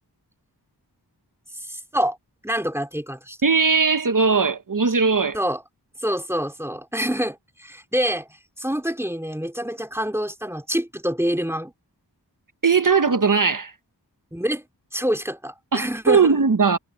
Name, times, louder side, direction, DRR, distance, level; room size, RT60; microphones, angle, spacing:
voice 1, 1.6-2.2 2.4-3.4 5.3-5.6 6.0-8.3 8.6-11.7 14.3-14.6 14.9-16.3, equal, 5° right, 2.9 m, -26 dB
voice 2, 3.4-5.4 12.6-13.7 15.7-16.8, right 5 dB, 50° right, 1.1 m, -19 dB
wide cardioid pair, 40°, 42 cm